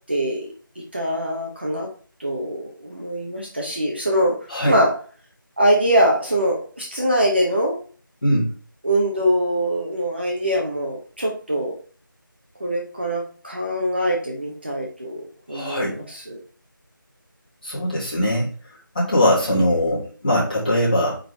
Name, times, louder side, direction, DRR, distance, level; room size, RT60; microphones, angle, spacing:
voice 1, 0.1-0.5 0.9-1.9 2.2-4.4 4.7-4.9 5.6-7.8 8.8-11.8 12.6-16.4, equal, 30° right, -1 dB, 0.9 m, -23 dB
voice 2, 15.5-15.9 17.6-18.5 18.9-21.1, equal, 25° left, -10 dB, 3.6 m, -21 dB
8.7 x 3.9 x 3.3 m, 0.41 s
figure-of-eight pair, 180°, 12 cm